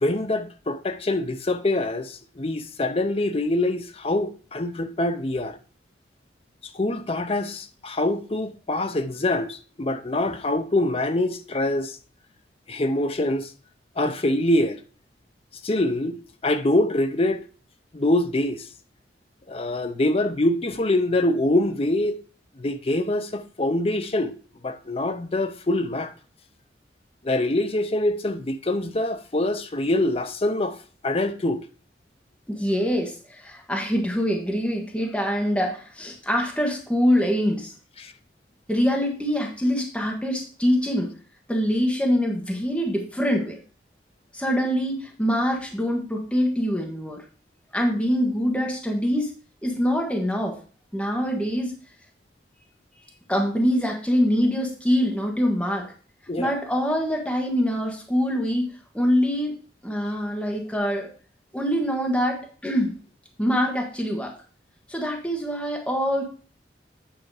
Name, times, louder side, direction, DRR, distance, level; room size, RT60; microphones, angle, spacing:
voice 1, 0.0-5.6 6.7-12.0 12.7-13.5 14.0-14.8 15.6-16.2 16.4-17.4 17.9-18.7 19.5-22.2 22.6-24.3 24.6-26.1 27.2-30.8 31.0-31.6 38.0-38.1 56.3-56.5, left 1 dB, 35° left, 0.6 m, -24 dB
voice 2, 32.5-37.7 38.7-41.1 41.5-43.6 44.3-47.2 47.7-49.3 49.6-50.6 50.9-51.7 53.0-55.9 56.4-58.7 58.9-59.5 59.8-61.1 61.5-62.9 63.4-64.3 64.9-66.2, equal, 5° left, 1.3 m, -24 dB
9.0 x 4.8 x 4.8 m
head